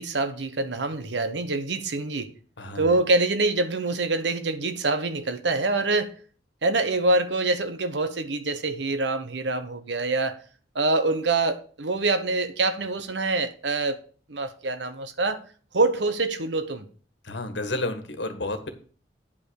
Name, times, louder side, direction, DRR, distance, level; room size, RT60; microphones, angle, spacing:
voice 1, 0.0-2.3 2.7-6.1 6.6-10.4 10.7-14.0 14.3-15.4 15.7-16.9, right 2 dB, 75° right, 1.1 m, -25 dB
voice 2, 2.6-3.0 17.2-18.7, left 2 dB, 75° left, 1.7 m, -31 dB
9.7 x 5.5 x 6.4 m
head